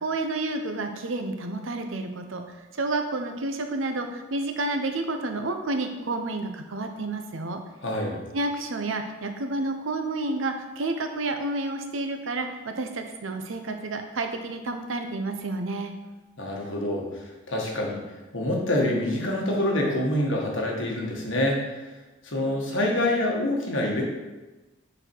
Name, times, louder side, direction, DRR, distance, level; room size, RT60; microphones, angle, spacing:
voice 1, 0.0-2.4 2.7-7.6 8.3-15.9, right 2 dB, 75° right, 6 dB, 0.7 m, -30 dB
voice 2, 7.8-8.2 16.4-18.0 18.3-21.6 22.2-24.0, left 1 dB, 65° left, -1 dB, 1.4 m, -26 dB
6.8 x 4.3 x 4.5 m, 1.2 s
head